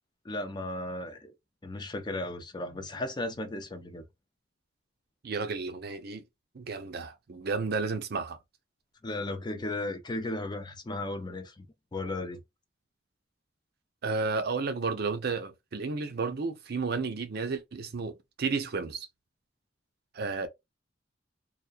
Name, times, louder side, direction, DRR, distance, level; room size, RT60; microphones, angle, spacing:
voice 1, 0.2-1.3 1.6-4.1 9.0-11.7 11.9-12.4, left 2 dB, 25° left, 0.4 m, -35 dB
voice 2, 5.2-6.2 6.5-8.4 14.0-19.1 20.1-20.5, right 4 dB, 60° right, 0.5 m, -32 dB
2.3 x 2.2 x 2.4 m
head